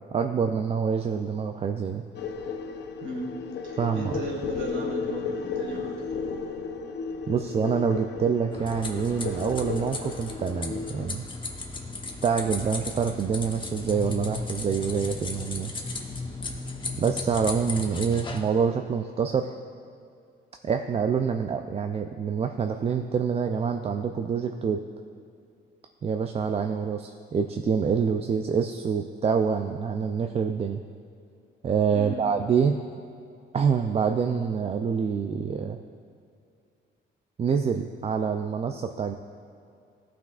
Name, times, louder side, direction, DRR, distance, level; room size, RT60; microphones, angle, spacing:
voice 1, 0.1-2.0 3.8-4.1 7.3-11.2 12.2-15.7 17.0-19.5 20.6-24.8 26.0-30.8 31.6-32.8 33.5-35.8 37.4-39.1, right 6 dB, 30° right, 6 dB, 0.4 m, -26 dB
sound 1, 2.1-11.1, left 5 dB, 60° left, 0.5 m, -34 dB
voice 2, 3.0-3.3 3.6-5.9 31.9-32.2, right 1 dB, 80° right, 0 dB, 1.5 m, -36 dB
sound 2, 8.5-18.4, left 3 dB, 25° left, 0.9 m, -36 dB
14.0 x 5.8 x 2.4 m, 2.5 s
cardioid pair, 90°, 20 cm